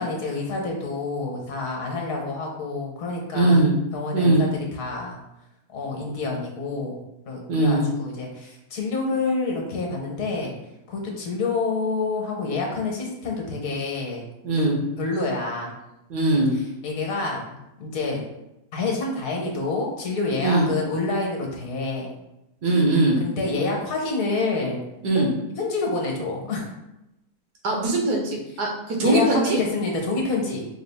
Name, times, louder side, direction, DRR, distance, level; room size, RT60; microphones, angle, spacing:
voice 1, 0.0-5.2 5.7-7.0 7.3-10.5 10.9-14.3 14.6-15.7 16.8-18.2 18.7-22.1 23.2-24.8 25.1-25.3 25.6-26.7 29.0-30.7, left 3 dB, 65° left, 0 dB, 1.3 m, -28 dB
voice 2, 3.3-3.7 4.1-4.5 7.5-7.8 14.4-14.8 16.1-16.5 20.4-20.7 22.6-23.2 25.0-25.3 27.6-29.6, right 2 dB, 90° right, -1 dB, 1.4 m, -20 dB
4.9 x 2.3 x 3.4 m, 0.91 s
omnidirectional pair, 1.7 m